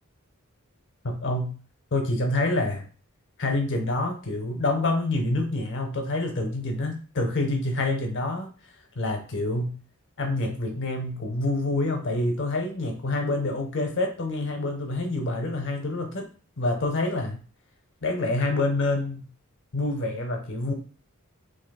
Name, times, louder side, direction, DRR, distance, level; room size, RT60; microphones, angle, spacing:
voice 1, 1.0-1.5 1.9-2.8 3.4-8.5 9.0-9.8 10.2-16.2 16.6-17.4 18.0-19.2 19.7-20.7, left 2 dB, 55° left, 3 dB, 0.6 m, -27 dB
3.7 x 2.6 x 2.3 m, 0.38 s
head